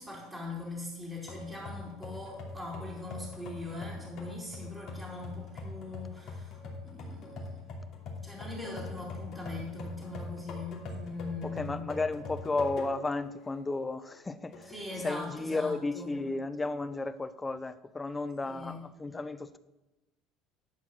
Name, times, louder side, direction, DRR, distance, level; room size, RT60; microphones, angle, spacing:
voice 1, 0.0-7.4 8.1-11.9 14.7-16.2 18.4-18.8, left 2 dB, 5° right, -7 dB, 2.6 m, -41 dB
sound 1, 1.3-13.2 13.7-13.8 14.5-15.1, left 3 dB, 45° left, 2.7 m, -43 dB
voice 2, 11.5-14.7 15.0-19.6, left 3 dB, 15° left, 13 dB, 0.5 m, -33 dB
11.5 x 4.5 x 7.5 m, 1.0 s
cardioid pair, 130°, 0 cm